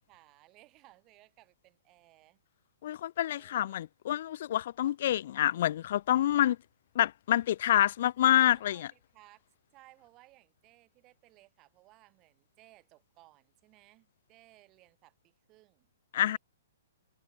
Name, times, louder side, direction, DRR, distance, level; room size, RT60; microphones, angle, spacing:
voice 1, 0.0-2.4 3.3-3.9 8.4-9.4 9.7-15.9 16.2-16.4, right 19 dB, 30° right, 6.1 m, -61 dB
voice 2, 2.8-6.6 7.0-8.9 16.1-16.4, left 12 dB, 50° left, 0.3 m, -27 dB
figure-of-eight pair, 115°, 0 cm